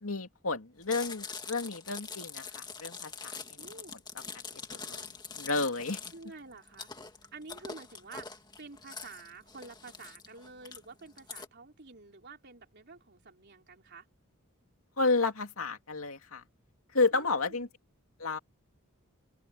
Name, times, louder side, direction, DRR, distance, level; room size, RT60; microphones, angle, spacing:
voice 1, 0.0-3.6 4.3-4.4 4.7-5.0 5.4-6.0 15.0-16.4 16.9-17.7 18.2-18.4, left 3 dB, 75° left, 2.6 m, -31 dB
Chewing mastication, 0.8-11.5, left 5 dB, 20° left, 1.9 m, -44 dB
voice 2, 3.6-4.0 6.1-6.9 7.3-14.1 17.1-17.7, right 3 dB, 50° right, 3.8 m, -49 dB
open air
head